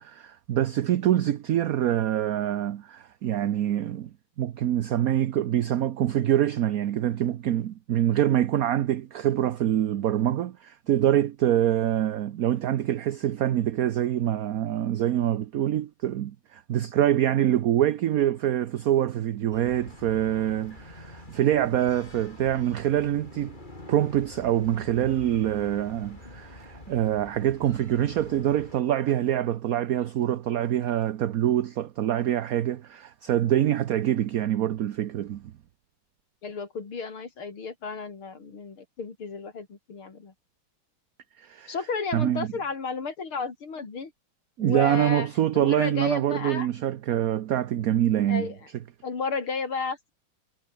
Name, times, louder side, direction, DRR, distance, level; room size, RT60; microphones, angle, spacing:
voice 1, 0.0-4.1 4.4-23.5 23.9-35.5 41.4-41.7 42.1-42.5 44.6-48.5, right 11 dB, 60° right, 1.0 m, -25 dB
sound 1, 19.5-28.8, left 2 dB, 20° left, 3.8 m, -46 dB
voice 2, 36.4-40.3 41.7-44.1 44.6-45.3 45.5-46.7 48.3-48.7 49.0-50.1, left 5 dB, 90° left, 4.4 m, -33 dB
omnidirectional pair, 2.3 m